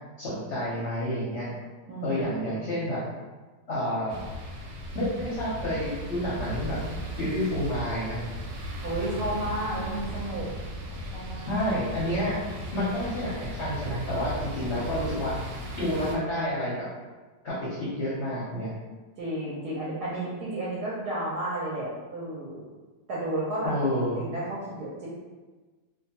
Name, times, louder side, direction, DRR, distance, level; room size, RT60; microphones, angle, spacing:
voice 1, 0.2-1.5 2.0-3.0 3.7-4.2 4.9-6.8 7.2-8.2 11.5-12.4 12.7-15.4 15.8-16.8 17.4-18.7 23.6-24.2, left 1 dB, 60° left, -8 dB, 0.8 m, -29 dB
voice 2, 1.9-2.6 8.8-10.5 11.1-11.7 14.6-14.9 19.2-22.6 23.1-23.7 24.2-25.1, right 1 dB, 70° right, -7 dB, 1.1 m, -32 dB
sound 1, 4.1-16.2, equal, 90° right, 1.3 m, -36 dB
2.7 x 2.2 x 2.8 m, 1.3 s
omnidirectional pair, 1.9 m